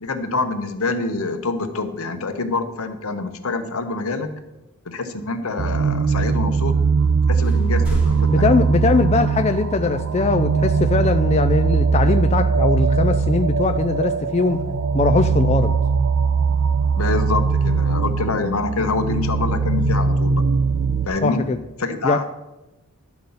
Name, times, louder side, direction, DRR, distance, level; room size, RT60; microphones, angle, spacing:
voice 1, 0.0-4.3 4.8-6.7 7.3-8.6 17.0-20.4 21.1-21.4 21.8-22.3, left 3 dB, 70° left, 8 dB, 0.9 m, -26 dB
sound 1, 5.6-21.1, right 5 dB, 70° right, 0.5 m, -20 dB
sound 2, 7.0-7.1 7.4-9.5, equal, 5° right, 1.1 m, -33 dB
voice 2, 8.3-14.6 14.9-15.7 21.2-21.6 22.0-22.2, left 3 dB, 30° left, 7 dB, 0.3 m, -20 dB
11.5 x 3.9 x 6.9 m, 1.0 s
head